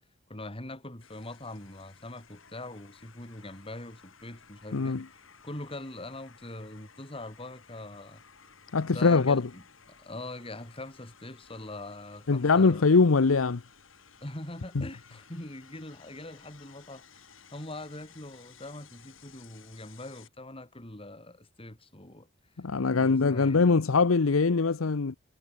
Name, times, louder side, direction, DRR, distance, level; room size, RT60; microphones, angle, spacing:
voice 1, 0.3-8.2 8.7-12.9 14.2-17.3 17.5-22.3 23.0-23.6, left 1 dB, 30° left, 4.2 m, -43 dB
sound 1, 1.0-20.3, left 6 dB, 70° left, 4.8 m, -57 dB
voice 2, 4.7-5.0 8.7-9.5 12.3-13.6 14.8-14.9 22.6-25.2, left 4 dB, 85° left, 0.7 m, -22 dB
head